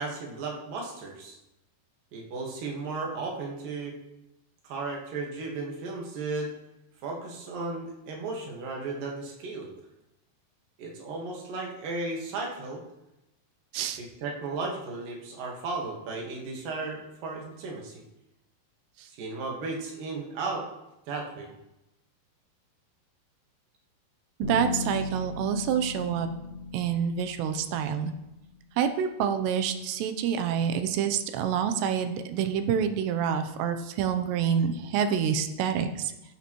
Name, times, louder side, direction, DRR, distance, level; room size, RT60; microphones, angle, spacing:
voice 1, 0.0-1.4 2.1-4.0 4.6-6.5 7.0-9.7 10.8-12.8 14.0-18.0 19.1-20.6 21.1-21.5, right 3 dB, 60° right, -1 dB, 3.1 m, -35 dB
Bass guitar, 24.4-28.4, left 3 dB, 25° left, 5.1 m, -37 dB
voice 2, 24.4-26.3 26.7-28.1 28.8-36.1, right 8 dB, 90° right, 7 dB, 3.0 m, -27 dB
15.0 x 8.4 x 3.1 m, 0.94 s
omnidirectional pair, 4.8 m